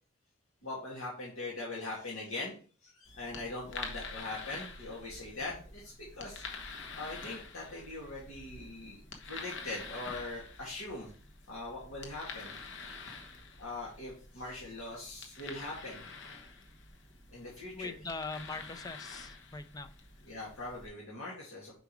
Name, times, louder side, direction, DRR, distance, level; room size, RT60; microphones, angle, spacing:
voice 1, 0.6-2.6 2.8-11.1 11.5-12.6 13.6-16.1 17.3-17.9 20.2-21.8, left 2 dB, 85° left, -4 dB, 2.1 m, -42 dB
sound 1, 3.0-20.9, left 4 dB, 60° left, 1.1 m, -47 dB
voice 2, 17.7-19.9, left 3 dB, 20° left, 10 dB, 0.5 m, -42 dB
5.1 x 4.8 x 4.8 m, 0.40 s
head